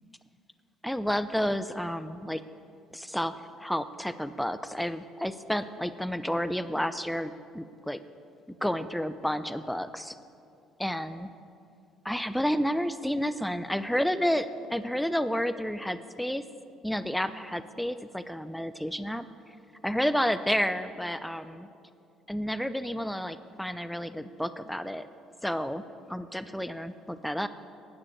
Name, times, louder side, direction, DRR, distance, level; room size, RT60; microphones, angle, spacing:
voice 1, 0.8-2.4 2.9-8.0 8.6-10.2 10.8-11.3 12.0-16.4 16.8-19.3 19.8-21.7 22.3-25.1 25.4-25.8 26.1-27.5, equal, 5° left, 12 dB, 0.6 m, -30 dB
12.0 x 9.8 x 7.3 m, 2.5 s
hypercardioid pair, 55°, 0 cm